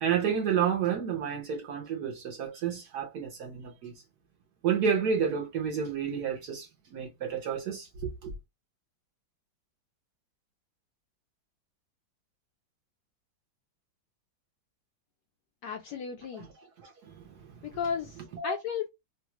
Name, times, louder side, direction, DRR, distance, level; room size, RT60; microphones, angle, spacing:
voice 1, 0.0-3.9 4.6-8.3 16.3-16.5 16.8-17.7 18.3-18.5, right 7 dB, 65° right, 1.0 m, -31 dB
voice 2, 15.6-16.5 17.6-18.9, left 7 dB, 75° left, 1.0 m, -34 dB
3.2 x 2.3 x 2.9 m
omnidirectional pair, 2.2 m